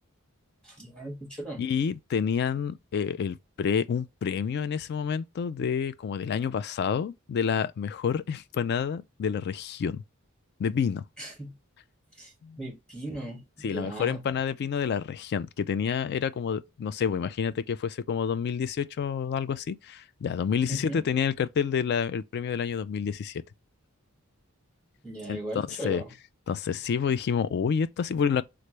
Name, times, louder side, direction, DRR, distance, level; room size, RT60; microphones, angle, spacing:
voice 1, 0.6-1.6 11.2-11.5 12.1-14.2 20.7-21.0 25.0-26.1, right 1 dB, 5° left, 1.5 m, -38 dB
voice 2, 1.6-10.0 10.6-11.0 12.4-12.6 13.6-23.4 25.3-26.0 26.5-28.4, left 7 dB, 50° left, 0.3 m, -28 dB
3.3 x 2.5 x 3.0 m
head